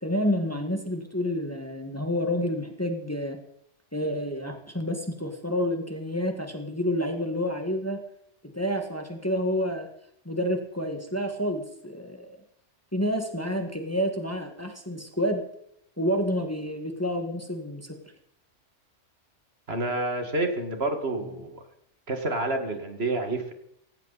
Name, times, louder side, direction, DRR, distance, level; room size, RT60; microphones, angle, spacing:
voice 1, 0.0-3.4 3.9-8.0 8.5-9.9 10.3-12.4 12.9-15.4 16.0-18.0 21.2-21.3, equal, 10° left, 4 dB, 1.8 m, -29 dB
voice 2, 19.7-21.6 22.1-23.5, right 2 dB, 55° right, 5 dB, 2.4 m, -28 dB
17.5 x 16.5 x 4.2 m, 0.74 s
omnidirectional pair, 1.3 m